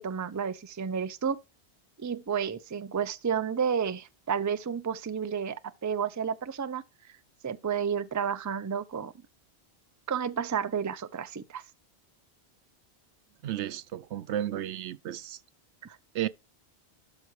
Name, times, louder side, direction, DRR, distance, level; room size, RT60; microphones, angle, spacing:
voice 1, 0.0-1.4 2.0-6.8 7.4-9.1 10.1-11.6 15.8-16.0, right 7 dB, 25° right, 0.4 m, -31 dB
voice 2, 13.4-15.4 16.1-16.3, right 11 dB, 85° right, 0.9 m, -33 dB
12.5 x 4.7 x 3.2 m
omnidirectional pair, 1.1 m